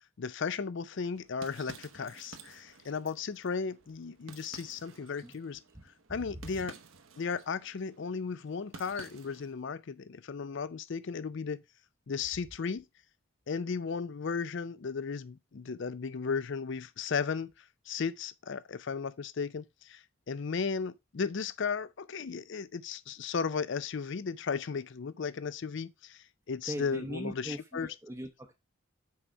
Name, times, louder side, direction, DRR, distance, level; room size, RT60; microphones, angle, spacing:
voice 1, 0.2-5.6 6.1-6.8 7.2-11.6 12.1-12.9 13.5-17.5 17.9-27.9, left 5 dB, 55° left, 0.4 m, -35 dB
sound 1, 0.9-9.6, right 4 dB, 65° right, 1.0 m, -53 dB
voice 2, 6.1-6.7 26.7-28.5, equal, 15° right, 0.7 m, -41 dB
6.4 x 4.7 x 4.5 m
head